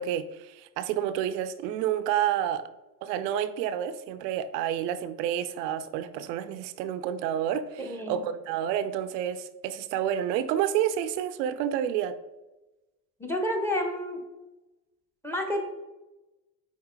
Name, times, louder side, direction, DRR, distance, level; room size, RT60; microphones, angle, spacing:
voice 1, 0.0-2.6 3.0-12.1, right 10 dB, 75° right, 11 dB, 0.7 m, -29 dB
voice 2, 7.8-8.3 13.2-14.2 15.2-15.6, left 1 dB, 5° left, 4 dB, 1.2 m, -30 dB
5.8 x 4.3 x 4.7 m, 1.1 s
hypercardioid pair, 90°, 50 cm